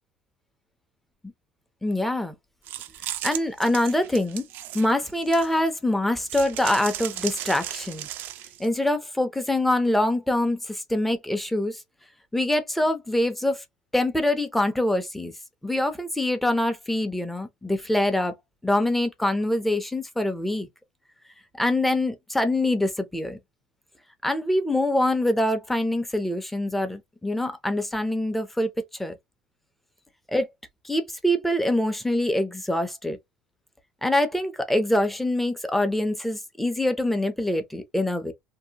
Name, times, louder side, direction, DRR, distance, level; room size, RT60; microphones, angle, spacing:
voice 1, 1.8-2.3 3.2-4.4 4.7-8.1 8.6-11.8 12.3-13.6 13.9-15.3 15.6-18.3 18.6-20.7 21.6-23.4 24.2-28.7 29.0-29.1 30.3-30.5 30.8-33.2 34.0-38.3, left 1 dB, 5° left, 0.5 m, -24 dB
sound 1, 2.7-5.7 6.3-8.7, right 12 dB, 55° right, 0.3 m, -35 dB
2.6 x 2.0 x 2.7 m
cardioid pair, 135°, 4 cm